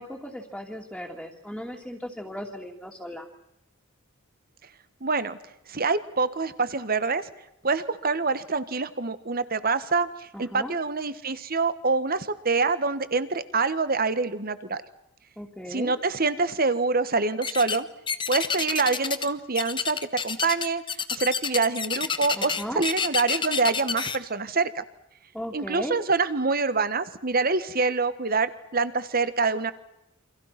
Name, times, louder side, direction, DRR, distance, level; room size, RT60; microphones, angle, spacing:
voice 1, 0.0-3.3 10.3-10.8 15.4-15.9 22.3-22.9 25.3-26.0, equal, ahead, -2 dB, 2.7 m, -37 dB
voice 2, 5.0-5.4 5.7-7.3 7.6-14.8 15.7-17.9 18.3-20.8 21.1-24.8 25.5-29.7, right 4 dB, 45° right, 13 dB, 1.6 m, -26 dB
sound 1, 17.4-17.8 18.1-19.3 19.5-24.2, left 6 dB, 25° left, 1.3 m, -28 dB
29.0 x 26.0 x 6.0 m, 0.84 s
head